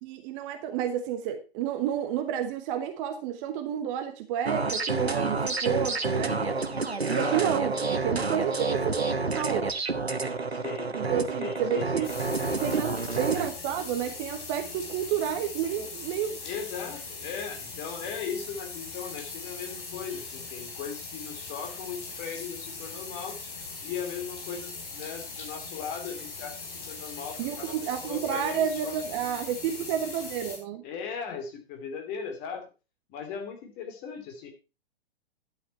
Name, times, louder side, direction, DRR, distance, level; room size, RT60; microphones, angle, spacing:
voice 1, 0.0-6.4 7.1-9.0 9.3-9.7 11.0-12.1 12.5-16.4 27.4-30.8, right 9 dB, 30° right, 7 dB, 1.2 m, -30 dB
sound 1, 4.4-13.5, right 3 dB, 85° right, 1.1 m, -29 dB
voice 2, 7.0-7.6 10.5-10.9 11.4-12.5 16.4-23.4 23.8-28.9 30.8-32.6 33.1-34.5, left 6 dB, 30° left, 4 dB, 2.9 m, -38 dB
sound 2, 12.0-30.6, left 4 dB, 55° left, 4.7 m, -40 dB
11.0 x 8.5 x 4.3 m, 0.30 s
figure-of-eight pair, 115°, 31 cm